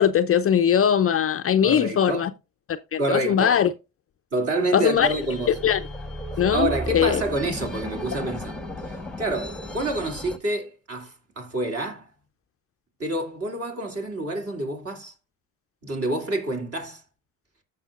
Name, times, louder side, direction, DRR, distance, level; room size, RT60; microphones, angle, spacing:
voice 1, 0.0-2.3 2.9-3.7 4.7-5.1 5.6-5.8 6.4-7.2, left 9 dB, 35° left, 0.6 m, -20 dB
voice 2, 1.6-2.2 3.0-3.6 4.3-5.6 6.5-8.6 9.2-12.1 13.0-15.1 15.8-17.0, right 2 dB, 35° right, 2.7 m, -28 dB
sound 1, 4.9-10.4, equal, ahead, 1.2 m, -35 dB
13.5 x 5.6 x 2.4 m
hypercardioid pair, 60°, 39 cm